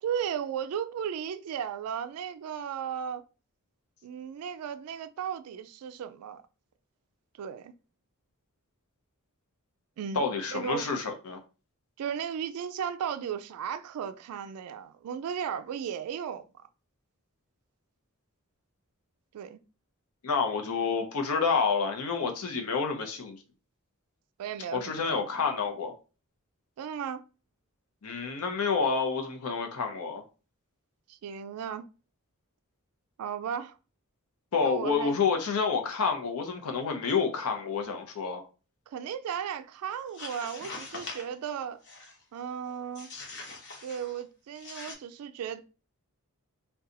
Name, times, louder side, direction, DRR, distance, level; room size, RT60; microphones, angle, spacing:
voice 1, 0.0-3.2 4.0-6.4 7.4-7.7 10.0-10.9 12.0-16.5 19.3-19.6 24.4-25.4 26.8-27.2 31.1-31.8 33.2-33.8 34.6-35.2 38.9-41.8 42.3-43.1 43.8-45.6, right 8 dB, 80° right, 0.3 m, -35 dB
voice 2, 10.1-11.4 20.2-23.4 24.7-25.9 28.0-30.2 34.5-38.4, left 5 dB, 80° left, 0.6 m, -29 dB
sound 1, 40.0-41.4 41.8-42.2 43.0-44.2 44.5-44.9, left 3 dB, 55° left, 0.9 m, -43 dB
2.6 x 2.3 x 3.8 m
head